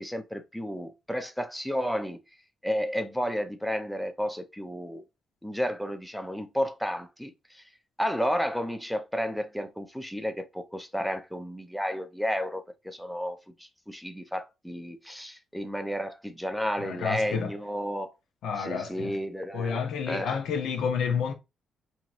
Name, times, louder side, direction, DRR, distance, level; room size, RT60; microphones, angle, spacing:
voice 1, 0.0-2.2 2.6-5.0 5.4-7.6 8.0-13.4 13.9-18.1 18.6-20.4, equal, ahead, 0.5 m, -32 dB
voice 2, 16.8-17.5 18.4-19.2 19.5-21.3, left 6 dB, 90° left, 1.0 m, -30 dB
4.4 x 2.9 x 2.5 m
cardioid pair, 155°, 0 cm